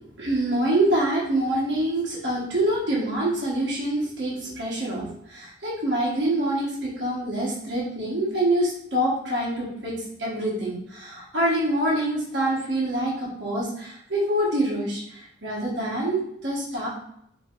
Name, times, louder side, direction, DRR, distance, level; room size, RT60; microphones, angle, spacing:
voice 1, 0.2-16.9, right 1 dB, 60° right, -6 dB, 1.2 m, -26 dB
4.5 x 2.9 x 2.5 m, 0.72 s
head